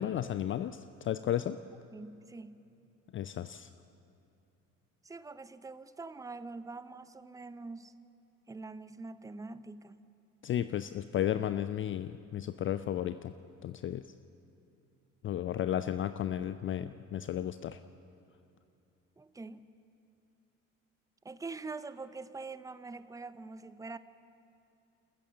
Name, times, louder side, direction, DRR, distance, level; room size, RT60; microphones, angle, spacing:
voice 1, 0.0-1.6 3.1-3.7 10.4-13.3 13.6-14.0 15.2-17.8, left 11 dB, 30° left, 12 dB, 0.5 m, -33 dB
voice 2, 1.9-2.6 5.0-7.9 8.5-10.0 19.2-19.7 21.2-24.0, right 3 dB, 10° right, 14 dB, 0.7 m, -44 dB
28.5 x 14.0 x 7.4 m, 2.6 s
figure-of-eight pair, 55°, 39 cm